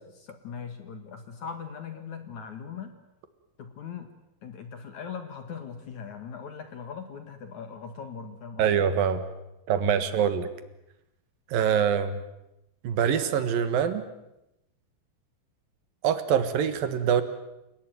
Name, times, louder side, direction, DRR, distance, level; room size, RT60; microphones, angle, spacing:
voice 1, 0.2-2.9 3.6-4.1 4.4-8.9, left 6 dB, 55° left, 8 dB, 2.4 m, -40 dB
voice 2, 8.6-9.2 9.7-10.5 11.5-12.2 12.8-14.1 16.0-17.2, right 8 dB, 60° right, 11 dB, 2.9 m, -24 dB
30.0 x 18.5 x 9.3 m, 0.89 s
omnidirectional pair, 5.3 m